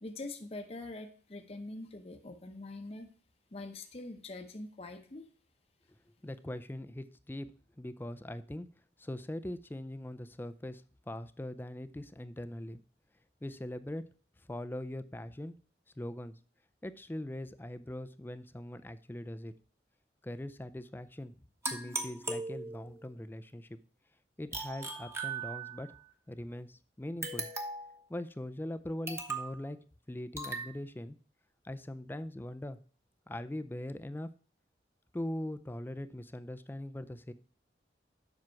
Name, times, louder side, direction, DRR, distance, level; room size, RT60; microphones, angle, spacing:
voice 1, 0.0-3.1 3.5-5.3, left 2 dB, 35° left, 5 dB, 0.8 m, -44 dB
voice 2, 6.2-7.5 7.8-8.7 9.0-12.8 13.4-14.0 14.5-15.6 16.0-16.3 16.8-19.5 20.2-21.3 21.7-23.8 24.4-25.9 26.3-27.5 28.1-29.8 30.1-31.2 31.6-32.8 33.3-34.3 35.1-37.3, left 1 dB, 10° left, 12 dB, 0.4 m, -41 dB
sound 1, 21.6-23.1 24.5-26.0 27.2-28.0 29.1-29.6 30.4-30.7, right 3 dB, 15° right, 1.0 m, -38 dB
7.6 x 5.9 x 4.5 m, 0.42 s
head